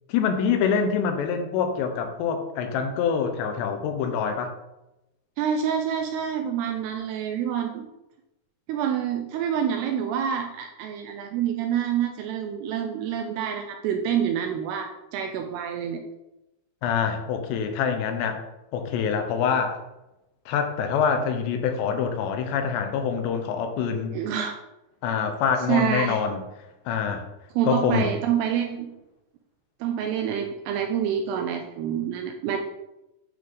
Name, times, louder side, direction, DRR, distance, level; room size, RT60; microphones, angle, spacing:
voice 1, 0.1-4.5 16.8-18.4 18.7-19.8 20.5-24.1 25.0-26.4 26.9-27.3 27.7-28.1, left 6 dB, 80° left, 6 dB, 2.8 m, -25 dB
voice 2, 5.4-7.9 8.7-16.0 24.1-24.5 25.7-26.2 27.6-28.9 29.8-32.6, right 8 dB, 85° right, 4 dB, 2.4 m, -27 dB
9.4 x 3.4 x 3.9 m, 0.93 s
omnidirectional pair, 5.1 m